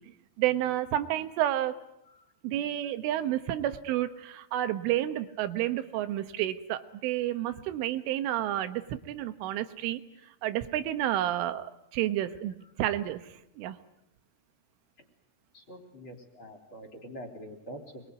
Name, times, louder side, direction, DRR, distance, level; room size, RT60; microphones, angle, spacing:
voice 1, 0.4-1.8 2.4-10.0 10.4-13.3 13.6-13.8, right 13 dB, 85° right, 11 dB, 3.8 m, -30 dB
voice 2, 15.5-18.0, equal, 30° left, 4 dB, 3.8 m, -45 dB
27.0 x 23.0 x 9.5 m, 0.84 s
omnidirectional pair, 5.5 m